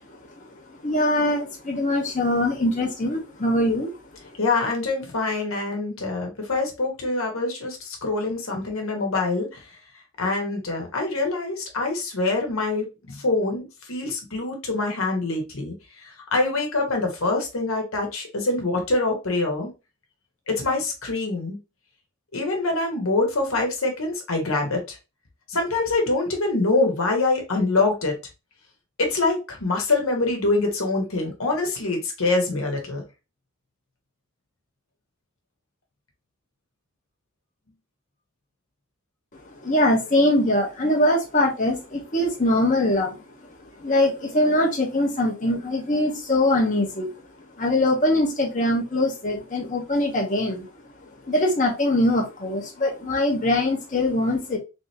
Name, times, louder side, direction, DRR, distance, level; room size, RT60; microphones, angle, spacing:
voice 1, 0.8-3.9 39.6-43.1 43.8-47.1 47.6-50.6 51.3-54.6, left 1 dB, 40° left, 1.0 m, -22 dB
voice 2, 4.4-9.7 10.2-19.7 20.5-21.6 22.3-25.0 25.5-28.2 29.0-33.0, left 3 dB, 80° left, 1.3 m, -25 dB
3.5 x 3.4 x 2.8 m
head